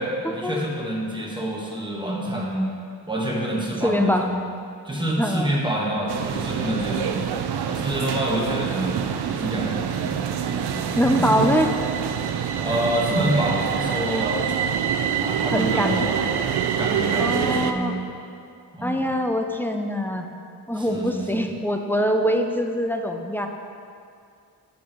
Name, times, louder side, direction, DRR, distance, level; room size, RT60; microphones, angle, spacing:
voice 1, 0.0-2.7 3.1-4.4 4.8-7.3 7.7-9.0 9.3-11.5 12.6-14.4 15.2-16.2 16.8-18.1 18.7-19.0 20.7-21.5, right 1 dB, 10° right, -4 dB, 1.2 m, -27 dB
voice 2, 3.8-4.3 5.2-5.5 11.0-11.7 15.5-16.0 17.2-17.9 18.8-20.3 20.7-23.5, equal, 5° left, 4 dB, 0.3 m, -23 dB
sound 1, 6.1-17.7, right 8 dB, 75° right, 0.5 m, -26 dB
13.0 x 5.3 x 2.9 m, 2.4 s
wide cardioid pair, 145°, 39 cm